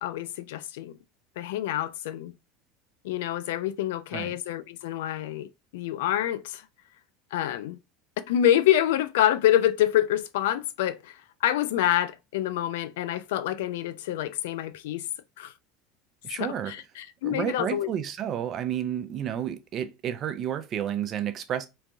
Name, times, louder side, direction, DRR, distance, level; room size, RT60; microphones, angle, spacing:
voice 1, 0.0-1.0 1.4-2.3 3.0-6.6 7.3-7.8 8.3-15.0 15.4-15.5 16.4-17.9, left 12 dB, 80° left, 0.3 m, -27 dB
voice 2, 16.2-16.7 17.2-21.7, right 10 dB, 40° right, 0.5 m, -31 dB
3.1 x 2.2 x 2.6 m
supercardioid pair, 110°, 0 cm